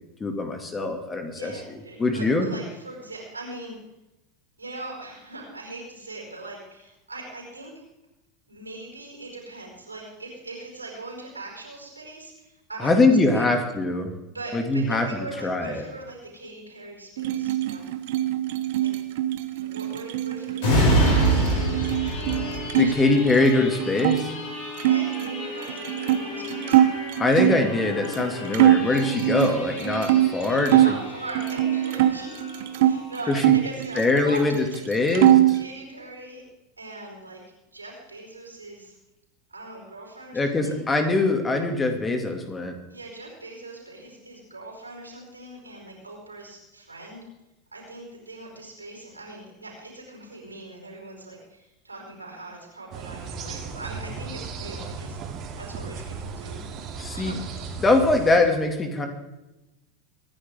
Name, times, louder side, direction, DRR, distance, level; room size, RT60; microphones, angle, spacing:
voice 1, 0.2-1.5 2.0-2.5 12.8-14.1 14.5-15.1 15.4-15.8 22.8-24.3 27.2-30.8 33.3-33.5 34.0-34.5 34.9-35.3 40.3-42.8 57.0-57.3 57.8-59.1, left 2 dB, 20° left, 5 dB, 2.4 m, -22 dB
voice 2, 1.3-3.7 4.6-7.8 8.5-12.9 13.3-13.6 14.2-17.9 18.8-18.9 19.5-21.9 22.7-22.9 24.6-26.8 30.4-32.5 32.8-35.2 35.5-36.4 36.8-37.4 37.7-38.9 39.5-40.8 42.9-47.2 47.7-55.2 55.6-57.4, right 2 dB, 90° right, 0 dB, 4.8 m, -40 dB
sound 1, 17.2-22.9 23.2-24.2 24.8-27.7 28.1-28.3 28.5-31.0 31.3-33.0 33.4-34.5 34.7-35.6, right 13 dB, 60° right, 0.9 m, -22 dB
sound 2, 20.6-33.9 34.4-34.5, equal, 60° left, 6.3 m, -29 dB
sound 3, 52.9-58.4, right 5 dB, 40° right, 2.9 m, -36 dB
24.0 x 10.5 x 3.7 m, 0.95 s
figure-of-eight pair, 80°, 0 cm